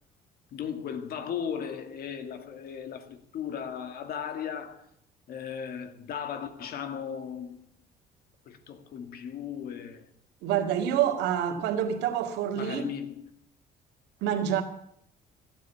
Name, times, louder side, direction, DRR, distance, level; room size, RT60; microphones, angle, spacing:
voice 1, 0.5-4.9 5.3-7.6 8.5-10.1 12.5-13.3, left 8 dB, 65° left, 2.0 m, -37 dB
voice 2, 10.4-12.9 14.2-14.6, right 9 dB, 85° right, 2.2 m, -27 dB
15.0 x 9.4 x 8.4 m
cardioid pair, 110°, 17 cm